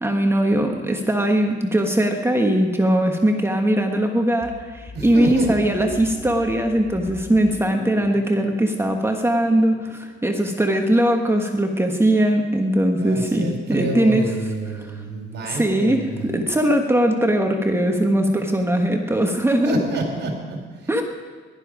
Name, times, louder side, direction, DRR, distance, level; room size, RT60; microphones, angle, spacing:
voice 1, 0.0-14.3 14.8-15.0 15.4-19.8 20.9-21.0, right 1 dB, 10° right, 3 dB, 1.4 m, -20 dB
sound 1, 4.4-10.0, left 1 dB, 15° left, 3.1 m, -40 dB
voice 2, 4.9-5.5 13.0-16.4 19.6-20.9, right 2 dB, 60° right, 2 dB, 4.0 m, -28 dB
17.5 x 12.5 x 5.1 m, 1.4 s
cardioid pair, 90°, 20 cm